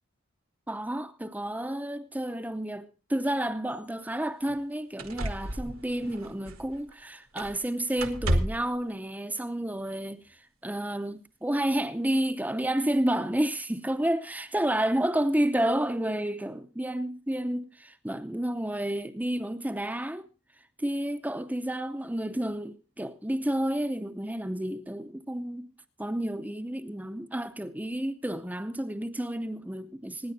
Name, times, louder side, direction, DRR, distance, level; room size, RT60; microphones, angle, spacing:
voice 1, 0.7-10.4 10.6-20.2 20.8-25.7 26.0-30.3, right 1 dB, 5° right, 0.7 m, -30 dB
sound 1, 3.7-3.8 4.5-4.6 5.0-6.9 7.4-7.7 8.0-8.8 9.9-10.0, right 1 dB, 70° right, 1.6 m, -32 dB
26.0 x 10.5 x 2.7 m
head